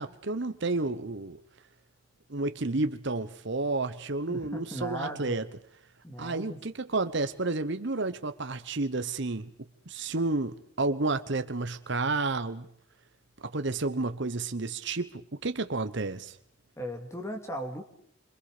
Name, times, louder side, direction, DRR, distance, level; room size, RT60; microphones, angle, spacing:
voice 1, 0.0-1.4 2.3-5.4 6.2-9.5 9.9-12.7 13.4-16.4, right 3 dB, 55° right, 10 dB, 1.0 m, -31 dB
voice 2, 4.3-5.4 6.0-6.6 16.8-17.8, equal, 15° left, 5 dB, 2.6 m, -37 dB
27.0 x 26.0 x 5.1 m, 0.64 s
head